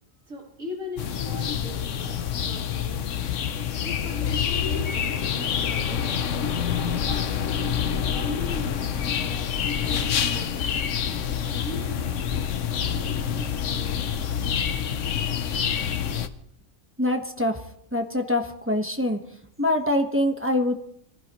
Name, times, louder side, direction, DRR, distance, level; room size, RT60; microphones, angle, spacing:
voice 1, 0.3-3.0 3.8-6.2 6.7-7.8 8.1-9.5 9.8-10.8 11.3-12.4 12.8-14.1, right 1 dB, 75° right, -2 dB, 3.5 m, -39 dB
sound 1, 1.0-16.3, left 8 dB, 70° left, 1.1 m, -27 dB
voice 2, 17.0-17.6 17.9-19.2 19.6-20.7, left 1 dB, 10° right, 3 dB, 1.1 m, -24 dB
25.5 x 15.5 x 3.1 m, 0.72 s
omnidirectional pair, 1.4 m